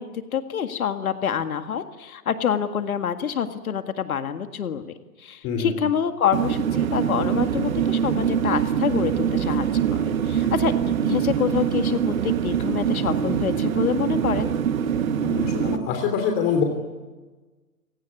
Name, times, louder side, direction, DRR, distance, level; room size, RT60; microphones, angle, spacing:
voice 1, 0.0-14.5, left 8 dB, 65° left, 8 dB, 1.9 m, -27 dB
voice 2, 5.4-5.8 15.2-16.6, left 6 dB, 25° left, 4 dB, 3.3 m, -25 dB
sound 1, 6.3-15.8, right 8 dB, 60° right, 1.8 m, -24 dB
28.5 x 18.0 x 9.7 m, 1.3 s
figure-of-eight pair, 125°, 46 cm